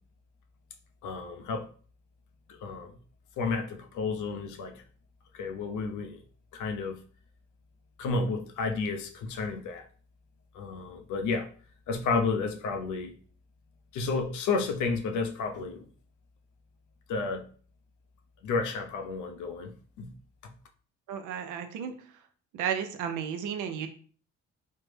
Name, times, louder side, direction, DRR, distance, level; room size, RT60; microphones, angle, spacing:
voice 1, 1.0-1.7 2.5-3.0 3.4-4.8 5.3-6.2 6.5-7.0 8.0-9.9 10.5-11.5 11.9-13.1 13.9-15.9 17.1-17.4 18.4-20.1 20.4-20.5, left 4 dB, 85° left, 5 dB, 0.6 m, -31 dB
voice 2, 21.1-22.2 22.5-23.9, right 8 dB, 85° right, 7 dB, 0.5 m, -33 dB
3.2 x 2.0 x 3.2 m, 0.43 s
cardioid pair, 90°, 30 cm